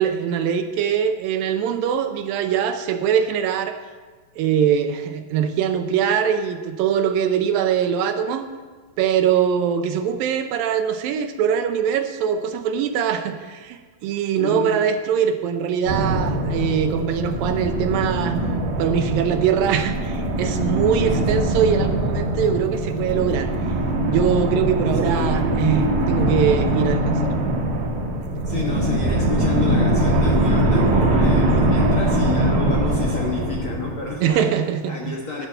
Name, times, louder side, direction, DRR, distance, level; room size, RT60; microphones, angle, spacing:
voice 1, 0.0-3.8 4.4-8.5 9.0-18.4 18.8-23.5 24.1-27.3 34.2-35.1, right 8 dB, 80° right, 7 dB, 2.4 m, -22 dB
voice 2, 14.4-14.8 21.0-21.4 25.1-25.5 28.5-34.5 34.9-35.5, left 3 dB, 50° left, -3 dB, 1.8 m, -29 dB
Dark Scary Castle Entrance, 15.9-34.3, right 1 dB, 60° right, 2.3 m, -22 dB
11.0 x 5.9 x 7.9 m, 1.4 s
omnidirectional pair, 4.1 m